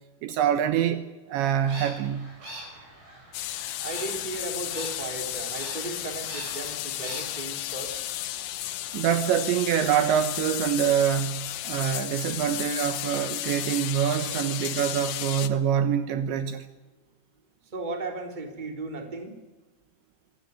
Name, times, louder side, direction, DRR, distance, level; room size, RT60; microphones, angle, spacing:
voice 1, 0.2-2.3 8.9-16.6, right 9 dB, 75° right, 3.2 m, -25 dB
sound 1, 1.4-7.4, right 1 dB, 35° right, 8.4 m, -43 dB
sound 2, 3.3-15.5, left 14 dB, 75° left, 3.4 m, -33 dB
voice 2, 3.8-7.9 17.7-19.4, right 2 dB, 10° right, 2.7 m, -36 dB
26.0 x 16.5 x 9.5 m
omnidirectional pair, 5.7 m